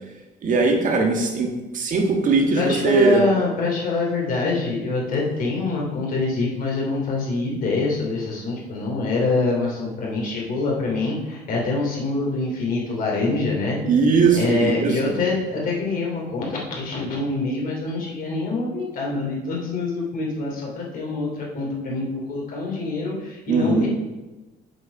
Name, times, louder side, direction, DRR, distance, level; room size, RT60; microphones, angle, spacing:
voice 1, 0.4-3.2 13.8-15.2 23.5-23.9, right 4 dB, 50° right, 2 dB, 1.6 m, -20 dB
voice 2, 2.5-13.8 14.3-23.9, left 3 dB, 55° left, -2 dB, 2.8 m, -25 dB
8.0 x 4.8 x 4.9 m, 1.1 s
cardioid pair, 110°, 17 cm